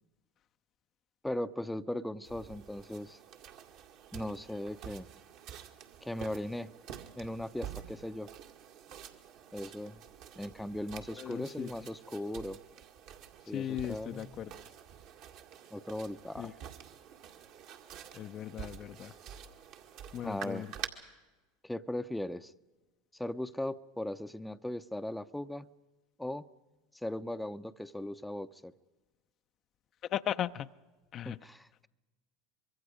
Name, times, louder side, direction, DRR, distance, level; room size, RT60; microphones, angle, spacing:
voice 1, 1.2-3.2 4.1-5.1 6.0-6.7 7.2-8.3 9.5-10.0 10.4-12.6 13.5-14.5 15.7-16.5 20.2-20.7 21.6-22.5 23.1-25.7 26.2-26.4 27.0-28.7 31.2-31.7, left 1 dB, 5° left, 10 dB, 0.7 m, -38 dB
sound 1, 2.2-20.9, right 9 dB, 60° right, 2.0 m, -48 dB
voice 2, 11.2-11.9 13.5-14.6 16.4-16.5 18.1-19.1 20.1-20.7 30.1-30.7 31.1-31.4, left 11 dB, 45° left, 10 dB, 0.6 m, -37 dB
25.0 x 22.5 x 5.1 m, 1.2 s
hypercardioid pair, 85°, 0 cm